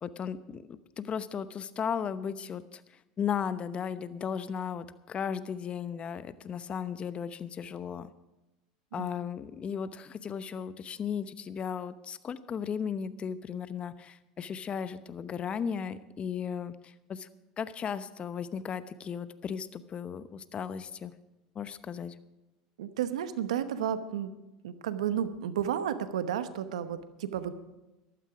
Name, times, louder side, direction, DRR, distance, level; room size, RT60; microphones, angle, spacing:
voice 1, 0.0-2.8 3.2-8.1 8.9-17.3 17.6-21.1 21.5-22.1, left 7 dB, 35° left, 14 dB, 0.8 m, -36 dB
voice 2, 22.8-24.3 24.6-27.5, right 9 dB, 80° right, 11 dB, 1.0 m, -32 dB
14.5 x 12.0 x 4.9 m, 1.0 s
hypercardioid pair, 90°, 3 cm